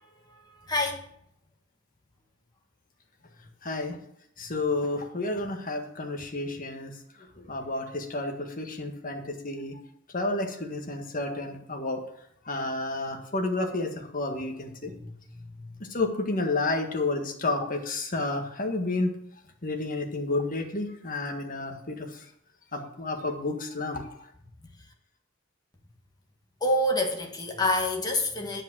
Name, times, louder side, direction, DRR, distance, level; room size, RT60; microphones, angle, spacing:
voice 1, 0.7-1.0 14.9-15.7 26.6-28.6, left 1 dB, 20° left, 2 dB, 1.6 m, -27 dB
voice 2, 3.6-4.0 4.4-6.9 7.2-9.8 10.1-12.0 12.4-14.9 15.9-19.1 19.6-22.2 22.7-24.3, left 2 dB, 45° left, 3 dB, 1.7 m, -31 dB
10.0 x 5.5 x 7.6 m, 0.71 s
head